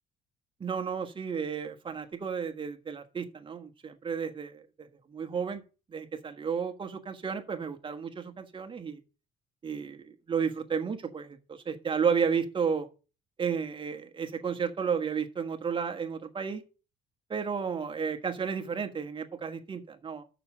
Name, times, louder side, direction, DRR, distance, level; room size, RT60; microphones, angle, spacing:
voice 1, 0.6-5.6 5.9-9.0 9.6-12.9 13.4-16.6 17.3-20.2, right 6 dB, 30° right, 1.4 m, -32 dB
6.7 x 6.1 x 6.5 m
cardioid pair, 110°, 17 cm